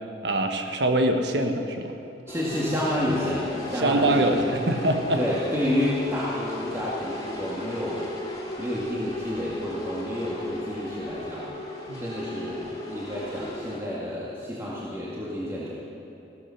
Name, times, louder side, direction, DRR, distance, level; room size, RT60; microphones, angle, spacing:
voice 1, 0.2-1.9 3.8-5.2 11.9-12.1, right 1 dB, 70° right, 5 dB, 1.4 m, -24 dB
sound 1, 2.3-13.8, left 1 dB, 20° left, 2.9 m, -36 dB
voice 2, 2.3-4.5 5.1-8.1 8.6-11.5 12.0-15.7, left 1 dB, 15° right, -7 dB, 2.1 m, -29 dB
16.0 x 14.0 x 5.8 m, 2.8 s
head